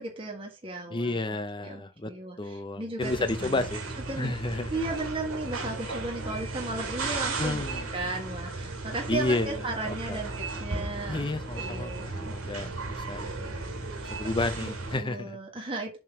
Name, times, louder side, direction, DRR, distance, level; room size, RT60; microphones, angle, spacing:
voice 1, 0.0-1.4 1.6-3.1 3.4-3.7 4.1-4.3 4.7-7.6 7.9-11.3 11.5-13.0 14.6-16.0, right 2 dB, 25° right, 1.6 m, -35 dB
voice 2, 0.9-2.1 2.4-3.8 4.2-4.7 7.4-7.9 9.1-10.2 11.1-13.6 14.0-15.4, left 2 dB, 20° left, 0.6 m, -31 dB
sound 1, 3.0-15.0, right 3 dB, 75° right, 2.5 m, -35 dB
7.7 x 3.8 x 6.0 m
head